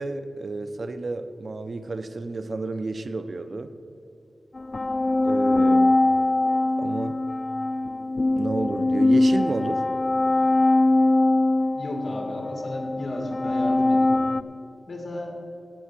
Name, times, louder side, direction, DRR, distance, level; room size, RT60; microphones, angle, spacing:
voice 1, 0.0-3.7 5.2-6.0 6.8-7.2 8.3-9.8, right 3 dB, 60° right, 10 dB, 0.7 m, -31 dB
sound 1, 4.6-14.4, left 2 dB, 40° left, 0.4 m, -22 dB
voice 2, 11.7-14.2 14.9-15.4, left 1 dB, 60° left, 2 dB, 2.2 m, -34 dB
16.5 x 5.6 x 7.5 m, 2.5 s
wide cardioid pair, 85°, 0 cm